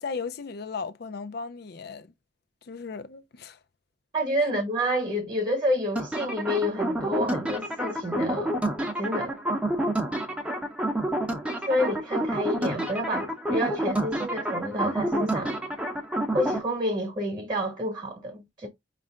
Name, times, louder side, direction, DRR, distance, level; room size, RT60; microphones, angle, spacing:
voice 1, 0.0-2.1 2.6-3.6, left 5 dB, 55° left, 0.5 m, -36 dB
voice 2, 4.1-8.6 9.0-9.4 11.6-15.6 16.3-18.7, equal, 20° right, 1.1 m, -29 dB
sound 1, 6.0-16.6, right 1 dB, 5° right, 0.7 m, -28 dB
5.4 x 2.5 x 3.4 m
head